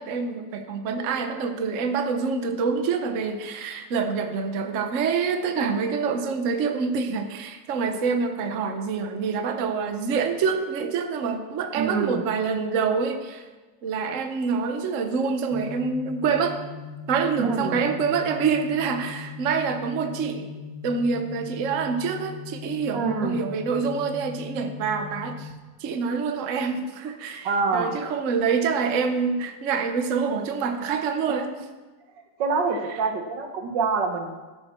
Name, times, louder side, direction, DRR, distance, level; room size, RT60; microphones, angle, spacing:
voice 1, 0.0-13.4 13.8-16.6 17.1-20.5 20.8-25.5 25.8-31.5, right 5 dB, 50° right, 6 dB, 1.1 m, -26 dB
voice 2, 11.8-12.2 17.4-17.8 22.9-23.4 27.4-28.0 32.4-34.4, right 4 dB, 80° right, 5 dB, 1.9 m, -26 dB
sound 1, 15.5-25.5, left 6 dB, 5° right, 1.8 m, -39 dB
12.5 x 10.5 x 4.4 m, 1.2 s
omnidirectional pair, 1.9 m